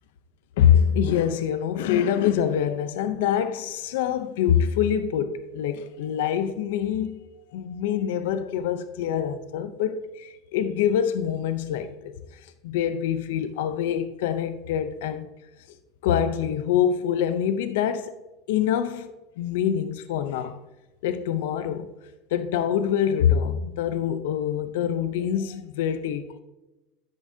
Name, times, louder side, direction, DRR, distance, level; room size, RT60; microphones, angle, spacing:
voice 1, 0.6-7.2 7.5-12.1 12.6-15.3 16.0-18.1 18.5-20.6 21.0-21.9 22.3-26.4, left 9 dB, 85° left, 0.5 m, -25 dB
10.0 x 8.5 x 2.7 m
supercardioid pair, 145°, 0 cm